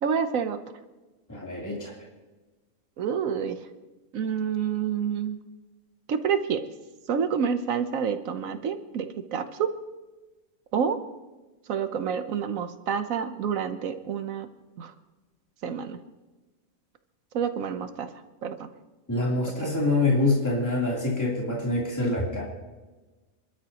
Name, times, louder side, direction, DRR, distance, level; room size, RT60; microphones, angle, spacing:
voice 1, 0.0-0.6 3.0-3.6 4.1-5.4 6.1-6.6 7.1-9.7 10.7-11.0 11.7-14.5 14.8-14.9 15.6-16.0 17.3-18.1 18.4-18.7 19.6-19.7, right 7 dB, 80° right, 9 dB, 1.2 m, -28 dB
voice 2, 1.3-1.9 19.1-22.4, left 2 dB, 10° left, -4 dB, 3.3 m, -25 dB
27.5 x 12.5 x 2.9 m, 1.2 s
omnidirectional pair, 1.4 m